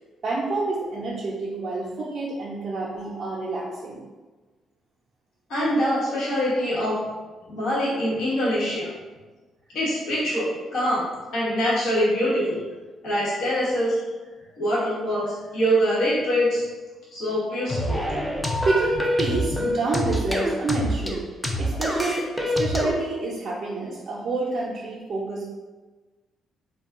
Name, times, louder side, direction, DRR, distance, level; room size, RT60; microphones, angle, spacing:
voice 1, 0.2-4.0 18.6-21.2 21.6-25.4, right 2 dB, 55° right, -5 dB, 0.5 m, -28 dB
voice 2, 5.5-7.0 7.5-8.9 9.7-11.0 11.3-12.6 13.0-14.0 14.6-16.6 17.1-18.1, equal, 70° left, -8 dB, 1.0 m, -24 dB
sound 1, 17.7-22.9, equal, 5° left, 0.4 m, -26 dB
2.2 x 2.2 x 3.6 m, 1.3 s
cardioid pair, 90°, 0 cm